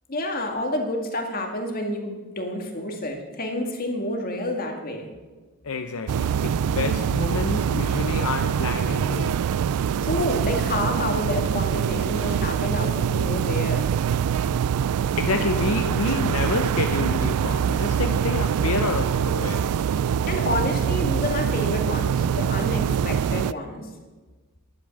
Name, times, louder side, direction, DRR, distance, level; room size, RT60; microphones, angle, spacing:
voice 1, 0.1-5.1 10.0-13.8 20.3-23.9, left 1 dB, 40° left, 2.1 m, -29 dB
voice 2, 5.6-9.4 15.2-19.7, left 4 dB, 70° left, 0.7 m, -28 dB
sound 1, 6.1-23.5, right 8 dB, 85° right, 0.3 m, -24 dB
11.5 x 11.5 x 6.5 m
head